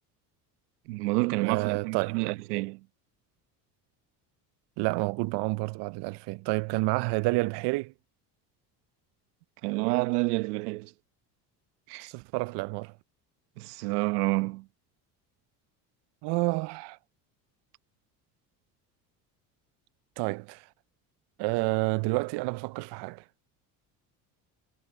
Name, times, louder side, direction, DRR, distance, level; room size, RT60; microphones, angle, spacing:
voice 1, 0.9-2.8 9.6-10.9 11.9-12.1 13.6-14.7, right 24 dB, 85° right, 1.2 m, -29 dB
voice 2, 1.4-2.2 4.8-7.9 12.0-12.9 16.2-17.0 20.2-20.7 21.4-23.2, right 24 dB, 65° right, 0.7 m, -29 dB
supercardioid pair, 85°, 45 cm